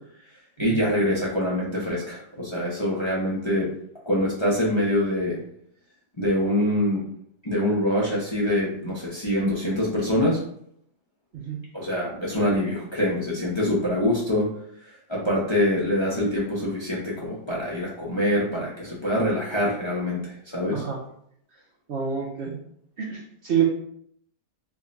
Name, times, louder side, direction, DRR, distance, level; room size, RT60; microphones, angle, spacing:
voice 1, 0.6-3.7 4.1-5.4 6.2-7.0 7.4-10.4 11.7-14.5 15.1-20.8, left 1 dB, 40° left, -7 dB, 0.4 m, -24 dB
voice 2, 20.7-21.0 21.9-22.6 23.0-23.6, right 8 dB, 65° right, -3 dB, 0.6 m, -27 dB
3.6 x 2.2 x 3.9 m, 0.68 s
omnidirectional pair, 1.9 m